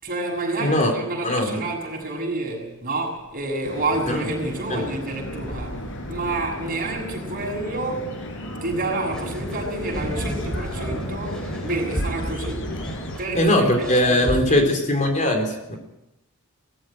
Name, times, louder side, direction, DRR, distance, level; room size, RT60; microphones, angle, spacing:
voice 1, 0.0-8.2 8.6-12.7 13.2-14.8, right 2 dB, 40° right, 6.7 m, -29 dB
voice 2, 0.6-0.9 1.2-1.6 4.1-4.3 4.7-4.8 13.3-15.8, left 1 dB, 35° left, 3.7 m, -20 dB
sound 1, 3.6-13.2, left 1 dB, 65° left, 4.7 m, -34 dB
sound 2, 9.1-14.4, equal, 5° left, 4.4 m, -32 dB
19.0 x 15.5 x 9.0 m
head